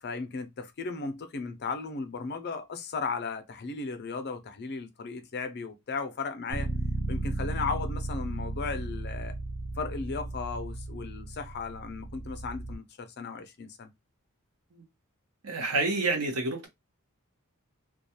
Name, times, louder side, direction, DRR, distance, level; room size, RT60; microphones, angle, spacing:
voice 1, 0.0-6.7 7.1-9.4 9.8-13.9, left 4 dB, 50° left, 0.5 m, -36 dB
Bass guitar, 6.5-12.8, right 2 dB, 55° right, 0.5 m, -35 dB
voice 2, 15.4-16.7, right 3 dB, 80° right, 0.9 m, -28 dB
2.3 x 2.3 x 2.7 m
head